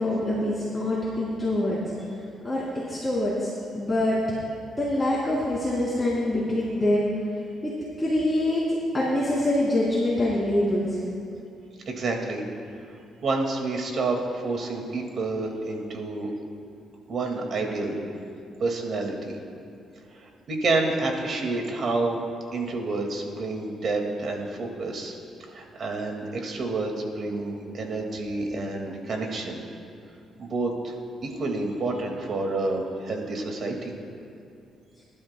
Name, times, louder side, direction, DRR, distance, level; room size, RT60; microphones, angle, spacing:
voice 1, 0.0-1.8 2.4-4.2 4.8-7.1 8.0-8.6 8.9-11.0, left 1 dB, 15° left, -8 dB, 3.1 m, -25 dB
voice 2, 11.9-12.4 13.2-16.3 17.1-18.0 18.6-19.4 20.5-22.2 22.5-25.1 25.5-29.6 30.4-30.9 31.2-33.9, right 3 dB, 55° right, 2 dB, 1.9 m, -29 dB
24.0 x 12.0 x 2.2 m, 2.5 s
cardioid pair, 90°, 0 cm